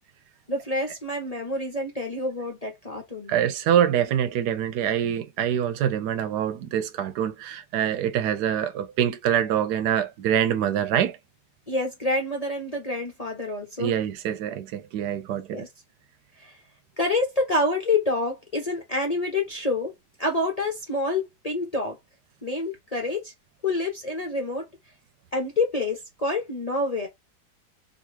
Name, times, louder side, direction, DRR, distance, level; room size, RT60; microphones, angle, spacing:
voice 1, 0.5-3.3 11.7-13.9 15.5-15.7 16.4-16.6 17.0-19.9 20.2-22.0 22.4-23.3 23.6-24.7 25.3-27.1, left 2 dB, 30° left, 0.8 m, -27 dB
voice 2, 3.3-11.2 13.8-15.6, right 9 dB, 85° right, 1.2 m, -25 dB
4.0 x 2.6 x 2.8 m
omnidirectional pair, 1.7 m